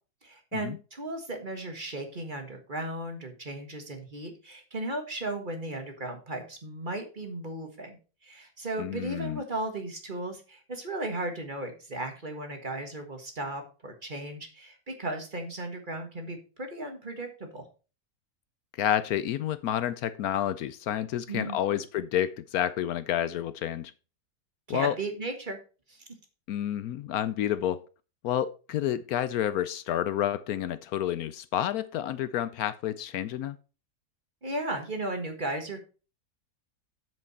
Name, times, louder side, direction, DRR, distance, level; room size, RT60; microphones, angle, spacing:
voice 1, 0.2-8.0 8.2-17.7 21.3-21.8 24.7-25.6 25.9-26.0 34.4-35.8, right 2 dB, 30° right, 1.6 m, -36 dB
voice 2, 8.8-9.4 18.8-23.9 24.7-25.0 26.5-27.8 28.2-33.6, left 11 dB, 75° left, 1.0 m, -29 dB
7.9 x 7.6 x 4.1 m
omnidirectional pair, 1.7 m